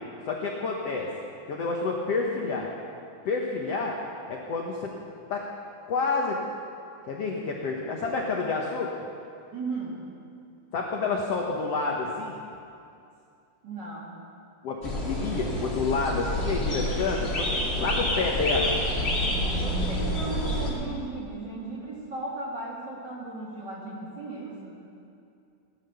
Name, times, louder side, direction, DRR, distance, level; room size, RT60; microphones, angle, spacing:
voice 1, 0.3-1.1 1.5-2.7 3.2-4.0 4.3-4.9 5.3-5.4 5.9-6.4 7.1-8.9 10.7-12.3 14.6-18.7, left 4 dB, 75° left, -1 dB, 1.4 m, -29 dB
voice 2, 9.5-10.0 13.6-14.1 19.5-24.8, right 3 dB, 35° right, -5 dB, 2.1 m, -36 dB
sound 1, 14.8-20.7, equal, 20° left, 2.1 m, -28 dB
18.0 x 10.5 x 6.9 m, 2.5 s
omnidirectional pair, 4.6 m